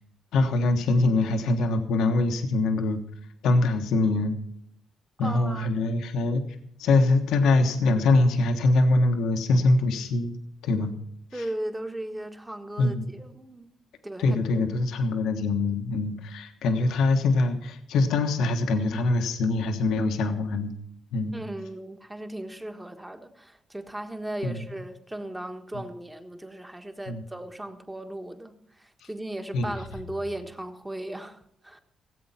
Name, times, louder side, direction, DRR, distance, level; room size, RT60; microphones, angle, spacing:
voice 1, 0.3-3.0 3.4-4.4 5.2-6.4 6.8-10.3 10.6-11.0 12.8-13.1 14.2-20.7 21.1-21.3 24.4-24.6 27.1-27.2 29.5-29.7, left 2 dB, 80° left, 1.3 m, -23 dB
voice 2, 5.2-5.7 11.3-13.7 14.0-14.6 21.3-31.8, right 1 dB, 10° right, 1.4 m, -37 dB
17.0 x 7.8 x 5.7 m
cardioid pair, 90°, 0 cm